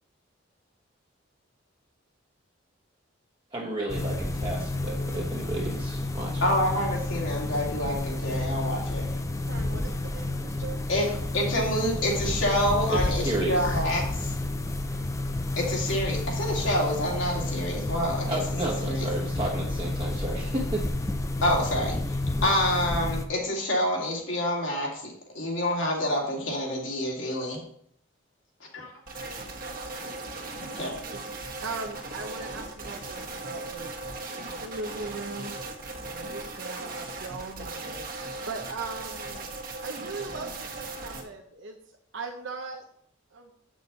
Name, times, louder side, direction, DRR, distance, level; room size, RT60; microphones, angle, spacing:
voice 1, 3.5-6.4 12.9-13.8 18.3-20.8, right 1 dB, 25° right, -2 dB, 1.0 m, -32 dB
sound 1, 3.9-23.3, left 2 dB, 15° left, 0.5 m, -30 dB
voice 2, 6.4-9.1 10.9-14.3 15.6-18.4 18.8-19.1 21.4-22.0 22.4-27.6 28.7-28.9 29.2-29.3 30.8-30.9, left 1 dB, 75° left, -2 dB, 2.6 m, -27 dB
voice 3, 9.3-11.0 31.1-31.2 31.6-34.3 34.6-35.6 36.0-38.1 38.5-39.5 39.8-41.8 42.1-42.8 43.3-43.5, right 3 dB, 70° right, 1 dB, 0.8 m, -39 dB
sound 2, 29.1-41.2, right 2 dB, 45° right, 1.3 m, -38 dB
8.4 x 6.2 x 4.1 m, 0.68 s
head